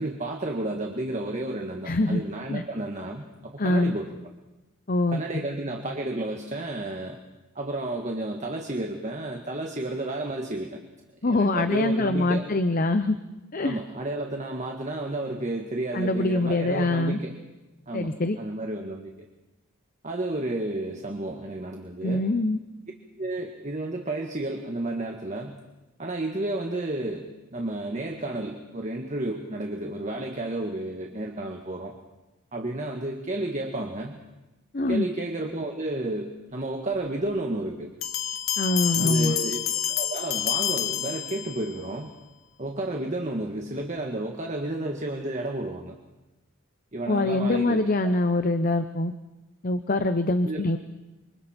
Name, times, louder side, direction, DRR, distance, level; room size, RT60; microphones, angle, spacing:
voice 1, 0.0-4.1 5.1-7.2 7.5-10.8 11.2-12.5 13.6-17.3 17.9-19.1 20.0-22.2 23.2-25.6 26.0-31.9 32.5-34.1 34.9-37.9 39.0-42.1 42.6-46.0 46.9-48.2 50.4-50.7, right 2 dB, 35° right, 2 dB, 1.6 m, -32 dB
voice 2, 1.8-2.2 2.5-2.6 3.6-3.9 4.9-5.2 11.2-13.2 13.5-13.8 15.9-17.2 17.9-18.4 22.0-22.6 34.7-35.1 38.6-39.4 47.1-49.1 49.6-50.8, left 2 dB, 40° left, 9 dB, 0.8 m, -24 dB
sound 1, 38.0-41.8, left 11 dB, 75° left, 1.3 m, -28 dB
28.0 x 25.0 x 4.4 m, 1.1 s
head